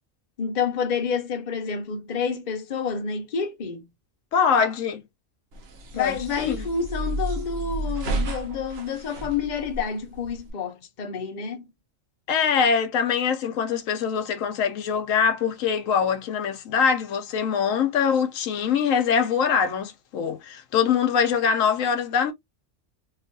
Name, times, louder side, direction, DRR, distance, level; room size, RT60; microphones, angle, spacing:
voice 1, 0.4-3.8 5.9-11.7, left 6 dB, 45° left, 0.7 m, -29 dB
voice 2, 4.3-5.0 6.0-6.6 12.3-22.3, left 7 dB, 85° left, 1.0 m, -23 dB
sound 1, 5.5-10.5, right 2 dB, 60° right, 0.8 m, -32 dB
3.0 x 2.4 x 2.5 m
omnidirectional pair, 1.3 m